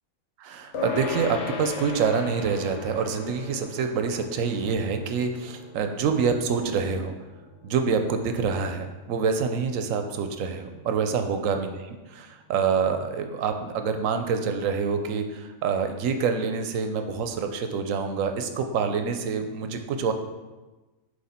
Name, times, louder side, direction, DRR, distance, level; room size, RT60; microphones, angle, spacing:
voice 1, 0.4-7.1 7.6-20.1, right 5 dB, 75° right, 6 dB, 1.0 m, -26 dB
sound 1, 0.7-10.4, left 5 dB, 60° left, 1.0 m, -38 dB
7.7 x 3.1 x 4.3 m, 1.2 s
omnidirectional pair, 1.4 m